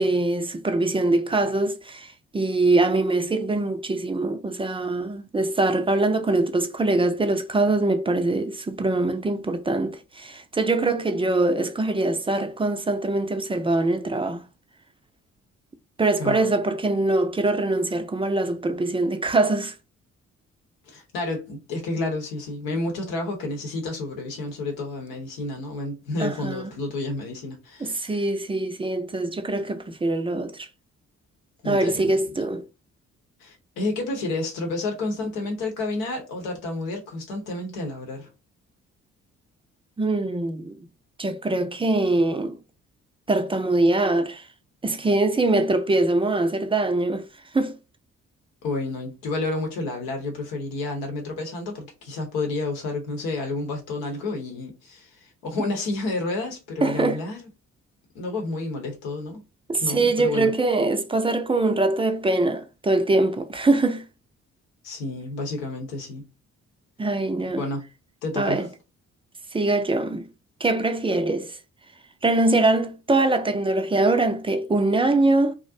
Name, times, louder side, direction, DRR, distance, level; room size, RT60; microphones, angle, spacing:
voice 1, 0.0-14.4 16.0-19.7 26.2-26.7 27.8-30.7 31.6-32.6 40.0-40.8 41.2-42.6 43.3-44.5 44.8-47.2 47.5-47.7 56.8-57.2 59.7-64.0 67.0-67.6 68.4-68.7 69.5-70.3 70.6-71.6 72.2-75.5, right 2 dB, 15° right, 0.4 m, -23 dB
voice 2, 16.2-16.5 20.9-28.2 31.6-32.5 33.4-38.3 48.6-57.4 58.1-59.4 59.8-60.5 64.8-66.2 67.5-67.8 68.2-68.6, left 2 dB, 80° left, 0.9 m, -30 dB
2.4 x 2.0 x 2.5 m
hypercardioid pair, 45°, 36 cm